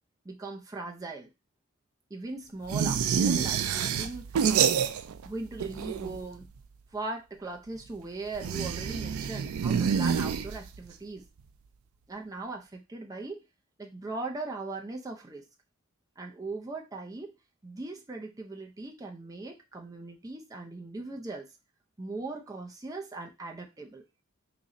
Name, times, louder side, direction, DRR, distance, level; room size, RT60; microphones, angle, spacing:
voice 1, 0.2-1.3 2.1-4.3 5.2-6.5 6.9-11.3 12.1-13.4 13.8-15.4 16.2-17.3 17.6-21.5 22.0-24.0, right 3 dB, 15° right, 1 dB, 0.5 m, -39 dB
sound 1, 2.7-5.3 5.5-6.4 8.3-10.9, right 7 dB, 90° right, 0.4 m, -27 dB
3.0 x 2.6 x 3.8 m, 0.26 s
head